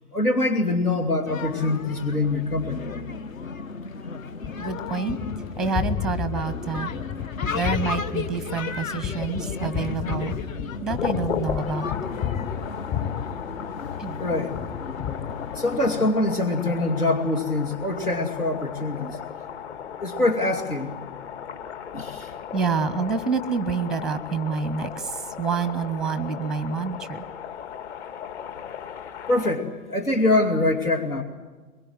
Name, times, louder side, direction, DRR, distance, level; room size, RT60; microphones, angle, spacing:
voice 1, 0.1-2.8 14.2-14.6 15.5-19.2 20.0-21.0 21.9-22.3 29.3-31.2, left 2 dB, 90° left, 3 dB, 2.8 m, -24 dB
sound 1, 1.3-16.1, left 5 dB, 65° left, 1.5 m, -34 dB
Gunshot gunfire, 4.4-14.1 14.5-16.0, left 9 dB, 30° left, 1.2 m, -32 dB
voice 2, 4.6-5.2 5.6-6.9 7.5-10.3 10.8-11.9 14.0-14.2 22.5-27.2, right 5 dB, ahead, 15 dB, 0.6 m, -28 dB
sound 2, 10.9-29.6, left 8 dB, 50° left, 2.2 m, -36 dB
23.5 x 22.0 x 7.9 m, 1.3 s
figure-of-eight pair, 115°, 44 cm